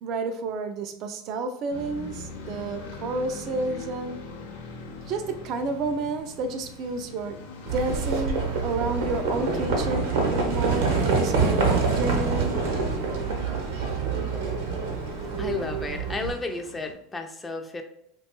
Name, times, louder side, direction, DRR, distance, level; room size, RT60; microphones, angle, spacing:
voice 1, 0.0-4.2 4.9-7.4 7.7-12.5, right 3 dB, 50° right, 7 dB, 0.3 m, -30 dB
sound 1, 1.7-16.9, left 3 dB, 85° left, 0.5 m, -43 dB
Livestock farm animals working animals, 7.7-16.3, right 4 dB, 80° right, 0.7 m, -26 dB
sound 2, 11.1-15.0, left 4 dB, 45° left, 0.9 m, -44 dB
voice 2, 15.4-17.8, left 3 dB, 20° left, 5 dB, 0.4 m, -32 dB
2.5 x 2.2 x 2.9 m, 0.73 s
hypercardioid pair, 95°, 0 cm